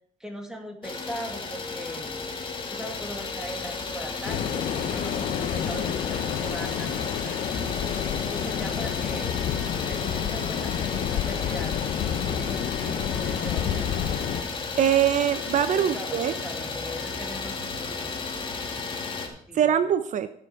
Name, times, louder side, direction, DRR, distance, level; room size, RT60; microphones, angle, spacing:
voice 1, 0.2-2.2 2.7-7.4 8.0-9.4 9.9-11.9 12.2-13.9 15.7-18.2 19.5-19.7, right 1 dB, 5° right, 2 dB, 2.2 m, -40 dB
Idling, 0.8-19.3, left 4 dB, 40° left, 2.4 m, -33 dB
sound 1, 4.2-14.4, left 9 dB, 80° left, 0.8 m, -29 dB
voice 2, 14.8-16.3 19.5-20.3, right 9 dB, 65° right, 11 dB, 0.7 m, -22 dB
13.5 x 7.2 x 4.9 m, 0.65 s
cardioid pair, 100°, 14 cm